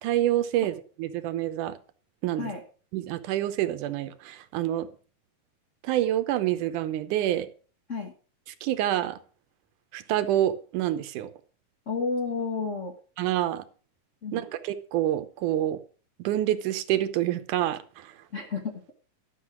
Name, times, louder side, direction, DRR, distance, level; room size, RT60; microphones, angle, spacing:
voice 1, 0.0-1.8 2.2-2.5 2.9-4.9 5.8-7.5 8.6-9.2 9.9-11.3 13.2-13.6 14.3-15.8 16.2-18.1, right 13 dB, 75° right, 12 dB, 2.2 m, -27 dB
voice 2, 11.9-12.9 14.2-14.4 18.3-18.8, left 4 dB, 70° left, 3 dB, 0.7 m, -31 dB
12.5 x 6.5 x 6.0 m, 0.38 s
omnidirectional pair, 3.8 m